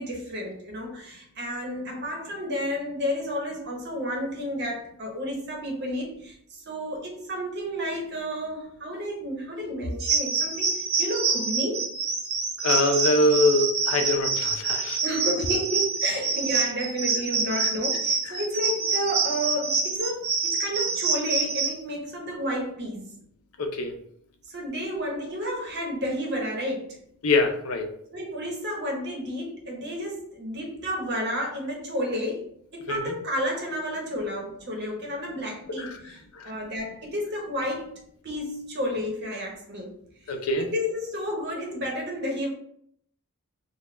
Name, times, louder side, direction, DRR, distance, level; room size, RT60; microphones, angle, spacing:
voice 1, 0.0-11.9 15.0-23.2 24.5-27.0 28.1-37.9 38.2-40.0 40.2-42.5, equal, 50° right, 0 dB, 1.0 m, -31 dB
sound 1, 10.0-21.8, right 4 dB, 75° right, 0.7 m, -26 dB
voice 2, 12.6-15.0 23.6-23.9 27.2-27.9 32.9-33.1 35.8-35.9 36.4-36.5 40.3-40.7, left 2 dB, 80° left, 5 dB, 0.6 m, -24 dB
4.0 x 2.2 x 3.2 m, 0.67 s
head